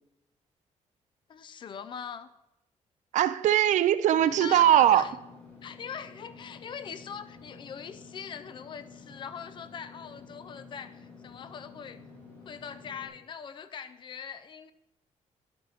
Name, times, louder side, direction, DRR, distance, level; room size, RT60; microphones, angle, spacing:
voice 1, 1.3-2.3 4.3-5.1 5.6-12.0 12.4-14.7, left 7 dB, 40° left, 12 dB, 0.4 m, -41 dB
voice 2, 3.1-5.0, right 11 dB, 75° right, 15 dB, 0.4 m, -21 dB
Engine / Mechanisms, 4.1-13.1, left 4 dB, 15° left, 3.9 m, -50 dB
10.5 x 8.8 x 3.5 m, 0.92 s
wide cardioid pair, 175°, 13 cm